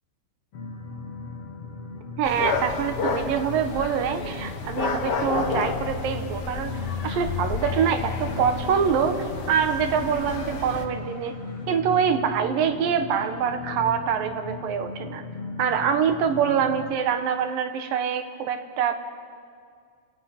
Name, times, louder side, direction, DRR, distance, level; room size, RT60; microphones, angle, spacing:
sound 1, 0.5-16.9, left 4 dB, 55° left, 2.1 m, -37 dB
sound 2, 2.2-10.9, left 4 dB, 85° left, 0.9 m, -31 dB
voice 1, 2.2-11.4 11.7-15.2 15.6-19.0, right 7 dB, 80° right, 8 dB, 2.9 m, -25 dB
sound 3, 6.1-11.7, equal, 45° right, 7.3 m, -51 dB
28.5 x 17.5 x 5.9 m, 2.2 s
omnidirectional pair, 3.9 m